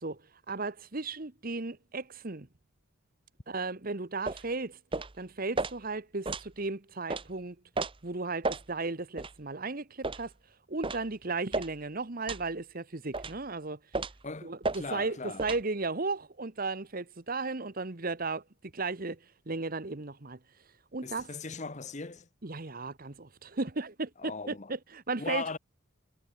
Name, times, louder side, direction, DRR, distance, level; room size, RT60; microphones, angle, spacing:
voice 1, 0.0-2.5 3.5-4.8 5.2-7.6 8.0-10.3 10.7-13.8 14.4-20.4 20.9-21.3 22.4-25.4, right 3 dB, 45° right, 1.3 m, -35 dB
sound 1, 4.3-4.5 4.9-5.1 5.6-5.7 6.2-6.5 7.1-7.2 7.7-7.9 8.4-8.6 9.2-9.3 10.0-10.2 10.8-11.0 11.5-11.7 12.3-12.5 13.1-13.4 13.9-14.2 14.6-14.8 15.4-15.6, right 3 dB, 25° right, 0.9 m, -33 dB
voice 2, 14.2-15.4 21.0-22.3 24.2-24.7 25.2-25.6, left 4 dB, 35° left, 1.2 m, -39 dB
head